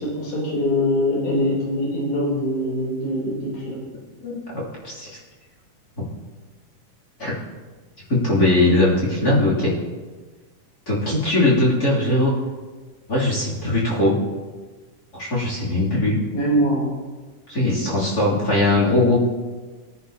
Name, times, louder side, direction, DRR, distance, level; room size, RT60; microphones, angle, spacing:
voice 1, 0.0-3.8 16.3-16.9, equal, 85° left, -4 dB, 5.3 m, -23 dB
voice 2, 8.1-9.7 10.9-12.3 13.1-14.1 15.2-16.2 17.5-19.2, left 2 dB, 30° left, -5 dB, 3.1 m, -20 dB
20.0 x 9.9 x 2.9 m, 1.3 s
omnidirectional pair, 3.9 m